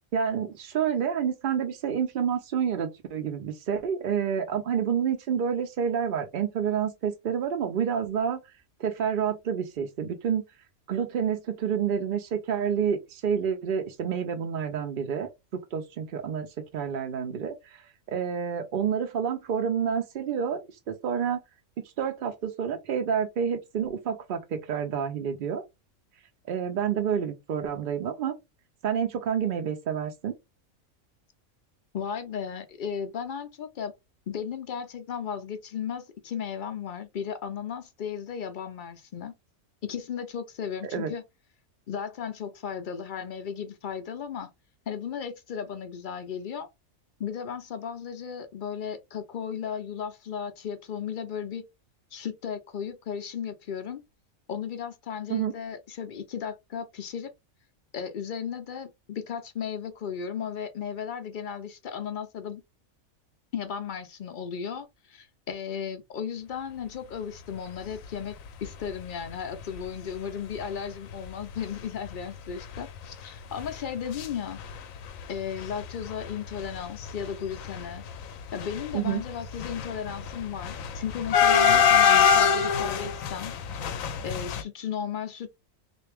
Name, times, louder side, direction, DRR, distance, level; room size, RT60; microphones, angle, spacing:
voice 1, 0.1-8.4 8.8-10.4 10.9-15.3 15.7-16.5 16.7-20.6 20.9-21.4 21.8-25.6 26.5-28.4 28.8-30.3 40.9-41.1 55.3-55.5 78.9-79.2, right 7 dB, 60° right, 0.5 m, -28 dB
voice 2, 31.9-33.9 34.3-39.3 39.8-41.2 41.9-44.5 44.9-46.7 47.2-51.6 52.1-54.0 54.5-57.3 57.9-62.6 63.5-74.6 75.3-78.1 78.5-83.5 84.2-85.5, left 7 dB, 60° left, 0.5 m, -35 dB
sound 1, 68.6-68.8 69.3-69.4 69.6-69.8 70.6-70.7 71.1-71.3 71.6-71.7 72.0-74.3 74.5-75.2 75.5-84.6, left 7 dB, 75° left, 1.0 m, -25 dB
3.3 x 2.5 x 3.3 m
omnidirectional pair, 1.4 m